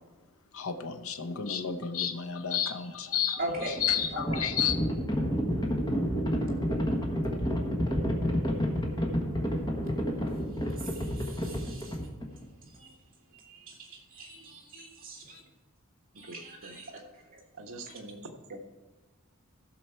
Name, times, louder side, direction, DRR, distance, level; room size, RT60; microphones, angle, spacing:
voice 1, 0.5-4.8, left 8 dB, 65° left, 0.8 m, -31 dB
Livestock farm animals working animals, 3.4-12.5, equal, 20° left, 1.3 m, -30 dB
voice 2, 3.4-3.7 4.1-4.4 10.8-12.0 12.8-12.9 13.3-15.4 16.2-17.0 17.3-17.4, right 1 dB, 40° right, 2.3 m, -40 dB
voice 3, 16.2-16.8 17.6-18.2 18.5-18.6, right 2 dB, 60° right, 1.2 m, -44 dB
15.0 x 6.5 x 4.5 m
head